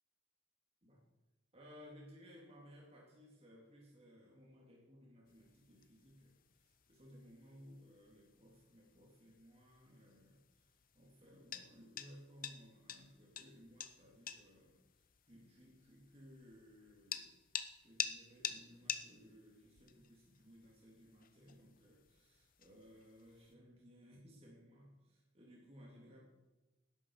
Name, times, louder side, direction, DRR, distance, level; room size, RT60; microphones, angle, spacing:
voice 1, 1.5-17.3 17.8-26.2, equal, 30° right, -3 dB, 3.1 m, -60 dB
sound 1, 5.3-23.5, left 9 dB, 45° left, 0.9 m, -50 dB
19.0 x 11.0 x 4.9 m, 1.1 s
head